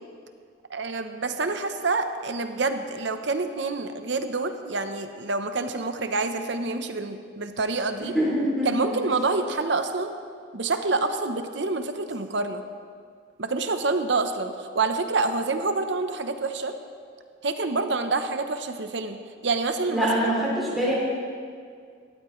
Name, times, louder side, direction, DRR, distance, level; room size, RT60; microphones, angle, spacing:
voice 1, 0.7-8.2 8.6-10.1 10.5-12.6 13.4-16.7 17.4-20.3, right 3 dB, 65° right, 8 dB, 0.8 m, -27 dB
voice 2, 8.1-8.7 19.9-20.9, equal, ahead, -7 dB, 2.9 m, -24 dB
18.0 x 13.5 x 3.2 m, 2.1 s
head